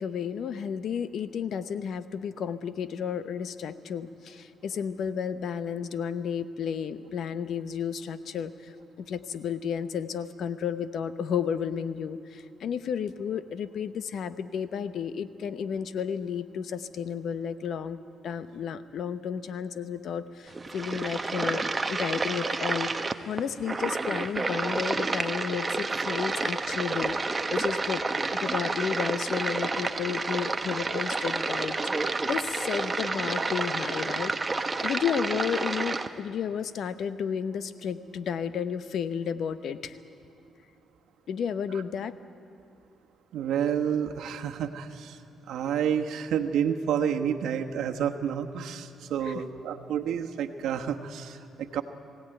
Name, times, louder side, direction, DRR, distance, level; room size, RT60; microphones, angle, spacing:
voice 1, 0.0-18.0 18.2-22.9 23.3-27.2 27.5-28.0 28.4-34.6 34.8-40.0 41.3-42.1 49.2-49.3, left 7 dB, 65° left, 12 dB, 0.9 m, -32 dB
sound 1, 20.5-36.1, right 3 dB, 25° right, 0.9 m, -30 dB
voice 2, 43.3-45.2 45.5-51.8, right 8 dB, 80° right, 5 dB, 1.2 m, -29 dB
21.0 x 17.0 x 9.0 m, 2.5 s
cardioid pair, 95°, 0 cm